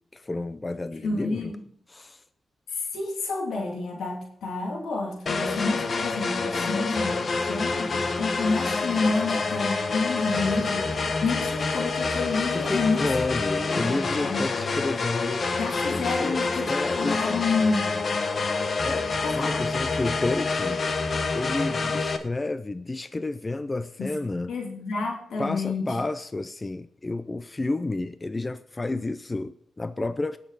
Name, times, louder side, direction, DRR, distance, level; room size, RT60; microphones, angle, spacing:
voice 1, 0.1-1.5 1.9-2.2 6.4-6.8 12.5-15.5 16.2-17.2 18.8-19.1 19.4-20.8 21.4-24.5 25.4-30.4, left 2 dB, 30° left, 12 dB, 0.6 m, -31 dB
voice 2, 1.0-1.6 2.7-7.1 7.5-13.0 13.7-14.4 15.6-17.9 19.2-19.5 24.0-24.1 24.5-26.0, left 3 dB, 85° left, 1 dB, 2.8 m, -29 dB
sound 1, 5.3-22.2, left 4 dB, 55° left, 1.3 m, -27 dB
17.5 x 6.8 x 4.1 m, 0.68 s
cardioid pair, 60°, 0 cm